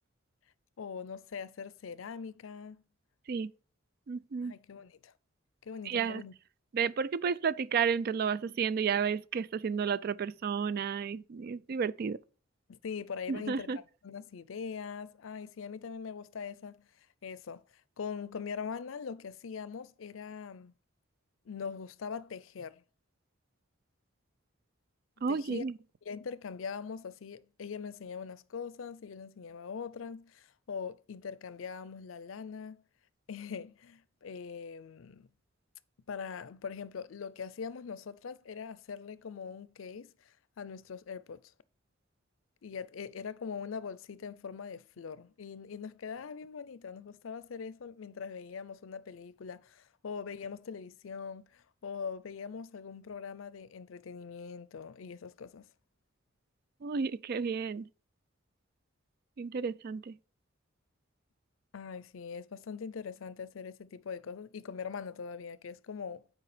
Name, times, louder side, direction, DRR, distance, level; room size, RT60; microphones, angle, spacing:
voice 1, 0.8-2.8 4.4-5.1 5.6-6.3 12.7-13.7 14.0-16.9 17.2-17.6 18.0-20.7 21.5-22.8 25.3-25.6 26.0-32.8 33.3-35.3 36.1-41.4 42.6-55.7 61.7-66.3, left 6 dB, 80° left, 0.5 m, -42 dB
voice 2, 4.1-4.5 5.9-6.2 6.7-12.2 13.3-13.8 25.2-25.7 56.8-57.8 59.4-60.1, right 6 dB, 50° right, 0.3 m, -32 dB
8.5 x 4.8 x 4.9 m
head